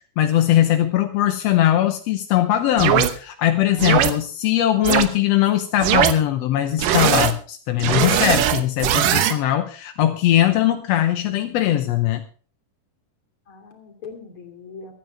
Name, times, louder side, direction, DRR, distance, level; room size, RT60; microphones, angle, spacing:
voice 1, 0.2-12.2, left 12 dB, 70° left, 7 dB, 1.7 m, -20 dB
sound 1, 2.8-3.1 3.8-4.1 4.8-5.0 5.8-6.1 6.8-7.3 7.8-9.3, right 10 dB, 80° right, 2.8 m, -19 dB
voice 2, 3.6-4.1 13.5-14.9, left 5 dB, 40° left, 3 dB, 3.5 m, -41 dB
24.5 x 9.4 x 3.4 m, 0.41 s
omnidirectional pair, 3.8 m